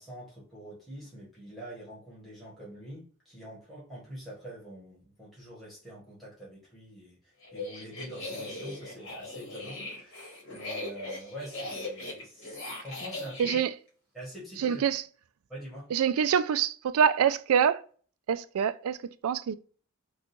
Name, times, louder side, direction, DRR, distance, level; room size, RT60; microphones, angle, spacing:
voice 1, 0.0-13.6 14.1-14.8 15.5-15.9, equal, ahead, 1.4 m, -45 dB
sound 1, 7.4-13.6, left 2 dB, 60° left, 1.7 m, -39 dB
voice 2, 13.4-13.7 14.6-15.0 15.9-17.8 18.3-19.0 19.2-19.5, right 7 dB, 80° right, 0.3 m, -25 dB
3.7 x 2.4 x 2.7 m
head